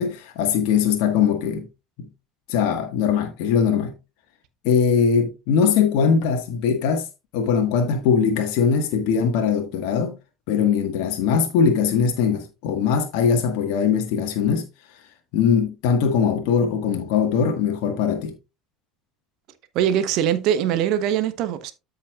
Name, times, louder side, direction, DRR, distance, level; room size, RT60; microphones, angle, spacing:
voice 1, 0.0-1.7 2.0-2.1 2.5-3.9 4.6-7.1 7.3-10.2 10.5-14.7 15.3-18.3, left 6 dB, 60° left, 1.6 m, -21 dB
voice 2, 19.7-21.7, right 10 dB, 55° right, 1.1 m, -22 dB
13.0 x 5.4 x 2.4 m
figure-of-eight pair, 65°, 0 cm